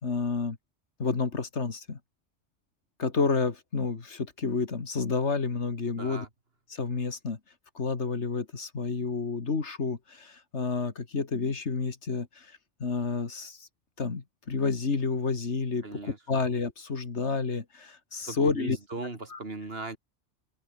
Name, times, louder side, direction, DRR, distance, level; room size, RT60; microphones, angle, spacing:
voice 1, 0.0-0.6 1.0-2.0 3.0-6.3 6.7-7.4 7.8-12.5 12.8-13.7 14.0-16.0 16.3-18.8 19.3-19.4, left 4 dB, 70° left, 2.3 m, -30 dB
voice 2, 6.0-6.3 15.8-16.2 18.2-20.0, right 3 dB, 55° right, 3.1 m, -38 dB
open air
omnidirectional pair, 1.2 m